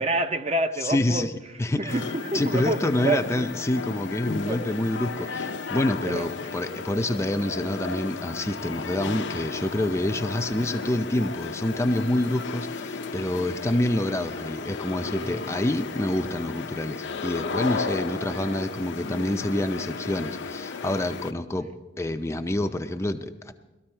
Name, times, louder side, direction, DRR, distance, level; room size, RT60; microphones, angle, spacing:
voice 1, 0.0-1.3 1.8-3.5 4.5-4.7 5.2-5.3 6.0-6.3 15.2-15.4 21.6-21.7, right 2 dB, 30° right, 8 dB, 0.6 m, -28 dB
voice 2, 0.8-1.3 1.6-2.0 2.3-21.7 22.0-23.5, left 1 dB, 15° left, 6 dB, 0.4 m, -27 dB
sound 1, 1.9-21.3, left 4 dB, 65° left, 0.6 m, -34 dB
18.5 x 13.0 x 4.4 m, 1.1 s
head